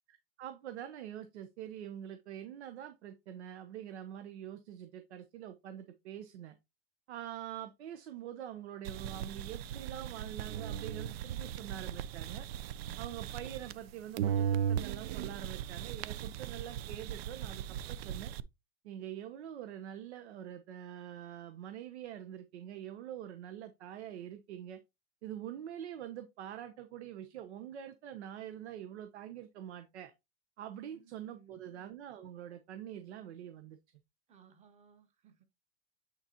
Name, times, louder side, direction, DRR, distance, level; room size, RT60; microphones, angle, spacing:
voice 1, 0.1-6.6 7.1-12.5 13.0-18.3 18.8-24.8 25.2-30.1 30.6-33.8, right 10 dB, 80° right, 1.0 m, -45 dB
sound 1, 8.8-13.9 14.2-18.4, right 9 dB, 65° right, 0.6 m, -37 dB
voice 2, 30.9-31.7 34.3-35.4, right 7 dB, 20° right, 1.1 m, -62 dB
8.8 x 4.1 x 2.9 m
supercardioid pair, 150°, 33 cm